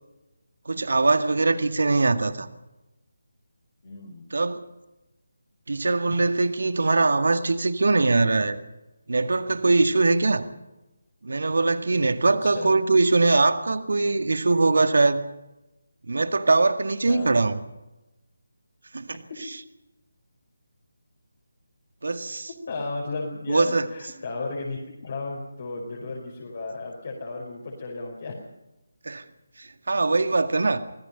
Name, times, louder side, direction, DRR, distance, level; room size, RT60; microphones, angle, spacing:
voice 1, 0.7-2.5 4.3-4.7 5.7-8.6 9.1-10.5 11.2-15.2 16.1-17.6 18.9-19.2 22.0-22.5 23.5-23.9 29.0-29.2 29.6-30.8, right 3 dB, 60° right, 1.9 m, -22 dB
voice 2, 3.8-4.2 6.1-6.3 10.1-10.5 12.2-12.8 17.1-17.4 19.3-19.4 22.7-28.4, left 3 dB, 40° left, 4.8 m, -34 dB
25.0 x 19.0 x 5.6 m
figure-of-eight pair, 155°, 0 cm